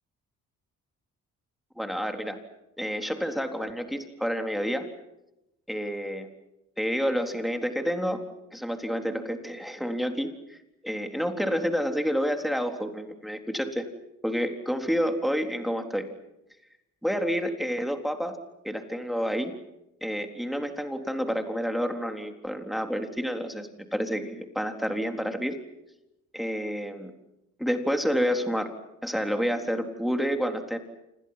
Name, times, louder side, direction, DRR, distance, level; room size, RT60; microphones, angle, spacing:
voice 1, 1.8-2.4 2.8-4.9 5.7-6.3 6.8-8.2 8.5-10.6 10.8-13.8 14.2-16.1 17.0-18.4 18.6-19.5 20.0-25.5 26.3-27.1 27.6-28.7 29.0-30.8, equal, ahead, 5 dB, 3.8 m, -29 dB
29.0 x 27.5 x 5.9 m, 0.89 s
cardioid pair, 90°, 30 cm